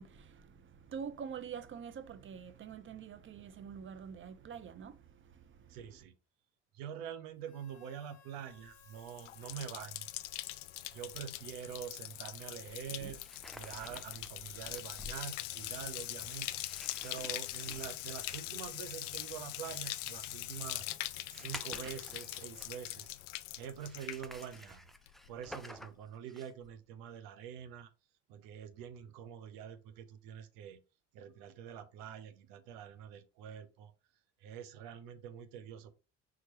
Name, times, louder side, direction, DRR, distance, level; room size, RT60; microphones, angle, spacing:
voice 1, 0.0-5.9, right 7 dB, 35° right, 0.6 m, -46 dB
voice 2, 5.7-6.1 6.7-10.1 10.9-13.2 13.5-16.5 17.0-20.9 21.3-23.1 23.5-24.8 25.3-27.9 28.3-30.8 31.1-33.9 34.4-35.9, right 8 dB, 65° right, 0.8 m, -45 dB
Harmonica, 7.4-12.2, left 5 dB, 45° left, 1.1 m, -66 dB
Bathtub (filling or washing), 8.7-24.8 25.1-25.6, left 16 dB, 75° left, 0.5 m, -42 dB
sound 1, 11.1-11.3 12.7-23.0 23.7-26.7, left 1 dB, ahead, 0.4 m, -53 dB
4.5 x 3.8 x 3.0 m
hypercardioid pair, 60°, 36 cm